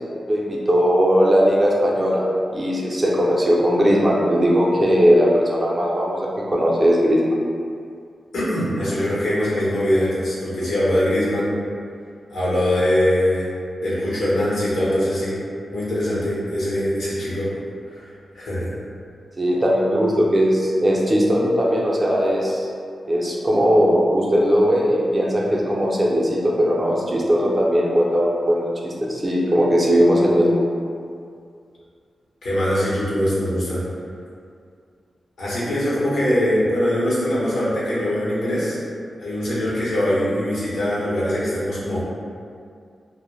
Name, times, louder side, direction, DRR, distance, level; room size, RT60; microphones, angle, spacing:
voice 1, 0.3-2.2 2.5-6.2 6.5-7.2 19.4-22.7 23.0-30.6, equal, 30° right, -4 dB, 0.5 m, -18 dB
voice 2, 8.3-11.6 12.3-13.5 13.8-15.4 15.7-17.5 17.9-18.7 32.4-33.9 35.4-38.8 39.2-42.0, left 1 dB, 85° left, -9 dB, 0.8 m, -22 dB
2.2 x 2.1 x 3.0 m, 2.3 s
cardioid pair, 65°, 0 cm